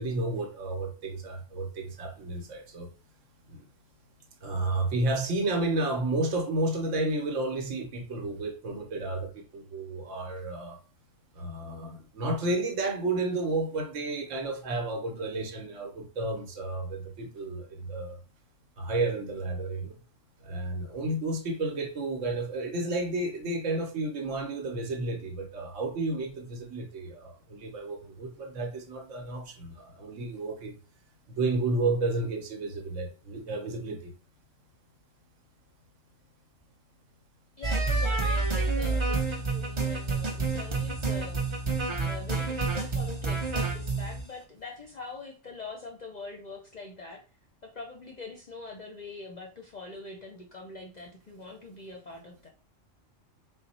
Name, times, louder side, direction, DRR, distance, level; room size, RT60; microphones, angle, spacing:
voice 1, 0.0-2.9 3.5-3.7 4.4-10.8 11.3-18.2 18.8-20.0 20.4-30.8 31.3-34.1, right 2 dB, 70° right, 1.1 m, -31 dB
voice 2, 37.6-41.4 42.0-47.2 47.6-52.5, left 3 dB, 45° left, 0.6 m, -43 dB
Sax solo, 37.6-44.2, right 3 dB, 35° right, 0.5 m, -29 dB
4.1 x 2.0 x 4.1 m
omnidirectional pair, 1.3 m